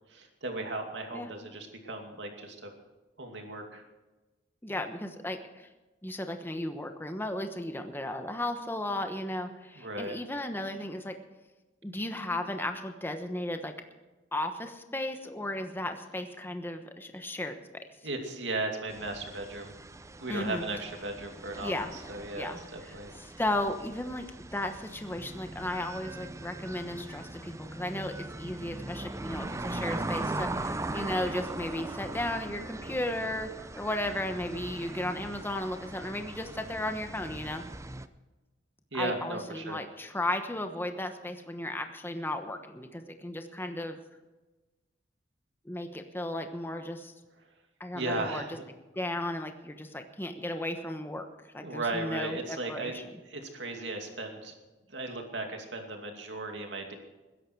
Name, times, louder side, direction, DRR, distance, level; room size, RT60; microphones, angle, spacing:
voice 1, 0.1-2.7 3.2-3.8 9.8-10.2 18.0-19.7 20.2-23.1 38.9-39.8 47.9-48.6 51.6-52.9 53.3-54.5 54.9-56.9, right 2 dB, 75° right, 3 dB, 2.5 m, -36 dB
voice 2, 4.6-5.7 6.0-11.1 11.8-13.7 14.3-17.8 20.3-20.6 21.6-21.9 22.4-22.9 23.2-24.3 24.5-37.6 38.9-44.0 45.6-47.1 47.8-48.5 48.9-51.2 51.5-53.0, left 1 dB, 10° left, 6 dB, 1.1 m, -35 dB
sound 1, 18.9-38.1, right 2 dB, 15° right, 0.6 m, -40 dB
21.0 x 11.0 x 4.7 m, 1.1 s
head